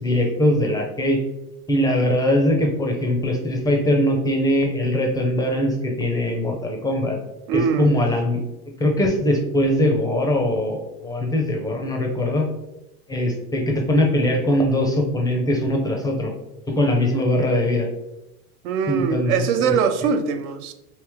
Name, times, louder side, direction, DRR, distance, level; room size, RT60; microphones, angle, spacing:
voice 1, 0.0-1.2 1.7-7.2 7.5-8.4 8.8-12.5 13.1-16.3 16.7-17.9 18.9-19.7, left 1 dB, 10° left, 2 dB, 0.4 m, -21 dB
voice 2, 7.5-7.9 18.6-20.7, right 6 dB, 80° right, 8 dB, 0.6 m, -22 dB
3.2 x 2.9 x 3.4 m, 0.92 s
supercardioid pair, 115°, 43 cm